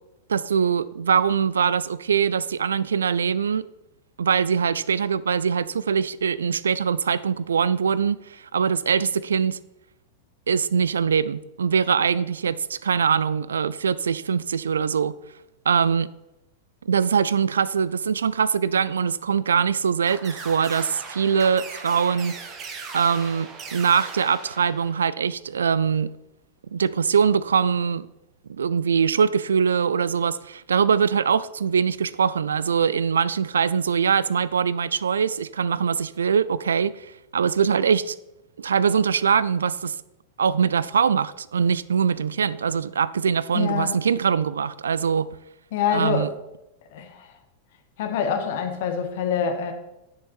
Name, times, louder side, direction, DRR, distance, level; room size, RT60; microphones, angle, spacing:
voice 1, 0.3-3.6 4.2-9.6 10.5-15.2 15.7-16.1 16.9-22.4 22.9-26.1 26.7-28.1 28.5-37.1 37.3-38.2 38.6-40.0 40.4-45.3 45.9-46.3, right 6 dB, 70° right, 0.3 m, -22 dB
sound 1, 20.1-25.2, right 4 dB, 30° right, 1.4 m, -39 dB
voice 2, 43.5-44.0 45.7-46.3 46.9-47.3 48.0-49.7, left 7 dB, 55° left, 1.5 m, -25 dB
10.5 x 6.6 x 4.5 m
figure-of-eight pair, 90°, 0 cm